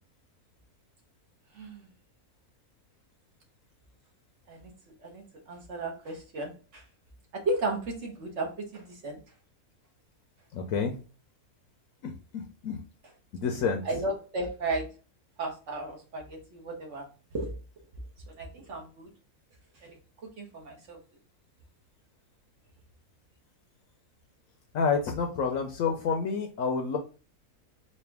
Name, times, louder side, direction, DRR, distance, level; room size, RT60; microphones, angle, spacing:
voice 1, 1.5-1.9 4.5-4.7 5.0-6.8 7.3-9.2 13.8-14.9 15.4-17.1 17.3-17.5 18.3-19.1 19.8-20.0 20.4-21.0, right 2 dB, 55° right, 1 dB, 1.4 m, -34 dB
voice 2, 10.5-10.9 12.0-12.8 13.3-13.8 24.7-27.0, left 5 dB, 70° left, 4 dB, 1.0 m, -29 dB
4.2 x 2.5 x 3.3 m, 0.36 s
omnidirectional pair, 1.5 m